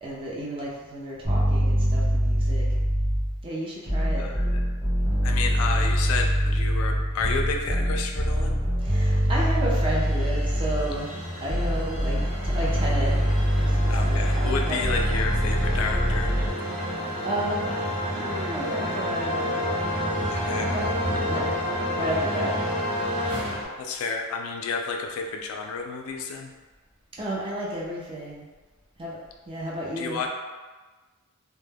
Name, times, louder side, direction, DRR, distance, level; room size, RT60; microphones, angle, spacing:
voice 1, 0.0-2.7 3.4-4.3 8.8-11.1 11.4-13.1 13.6-14.8 17.2-19.6 20.7-20.8 21.1-21.5 21.9-22.5 27.2-28.5 29.0-29.2 29.5-30.2, right 1 dB, 25° right, -4 dB, 0.5 m, -32 dB
sound 1, 1.2-3.4 3.9-11.0 11.5-16.5, equal, 5° right, 1.0 m, -24 dB
voice 2, 4.2-4.6 5.2-8.6 13.9-16.4 20.3-20.7 23.8-26.5 30.0-30.3, left 4 dB, 75° left, 3 dB, 0.3 m, -31 dB
sound 2, 8.9-23.6, equal, 50° right, 0.8 m, -30 dB
2.2 x 2.1 x 3.3 m, 1.3 s
head